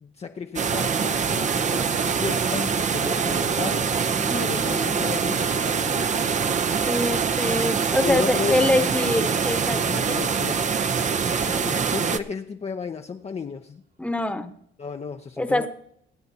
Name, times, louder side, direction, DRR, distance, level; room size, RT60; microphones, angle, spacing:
voice 1, 0.0-3.9 4.4-6.2 8.0-9.1 9.7-10.7 11.4-13.8 14.8-15.7, left 5 dB, 30° left, 4 dB, 0.6 m, -33 dB
sound 1, 0.6-12.2, right 6 dB, 35° right, 0.7 m, -24 dB
sound 2, 1.7-11.4, right 5 dB, 70° right, 4.1 m, -45 dB
voice 2, 4.3-5.1 6.9-10.1 11.6-11.9 14.0-14.5 15.4-15.7, left 1 dB, 5° left, 8 dB, 1.1 m, -25 dB
25.0 x 9.2 x 2.8 m, 0.71 s
cardioid pair, 90°, 20 cm